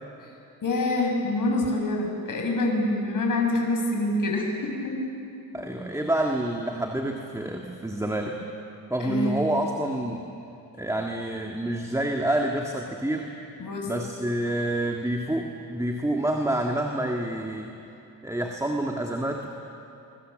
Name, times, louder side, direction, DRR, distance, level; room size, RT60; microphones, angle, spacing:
voice 1, 0.6-5.0 9.0-9.4 13.6-13.9, left 2 dB, 55° left, 1 dB, 6.4 m, -26 dB
voice 2, 5.5-8.4 8.9-10.3 10.8-13.3 13.8-17.7 18.2-19.5, right 1 dB, 10° right, 1 dB, 1.9 m, -28 dB
26.0 x 22.5 x 7.7 m, 2.7 s
cardioid pair, 100°, 39 cm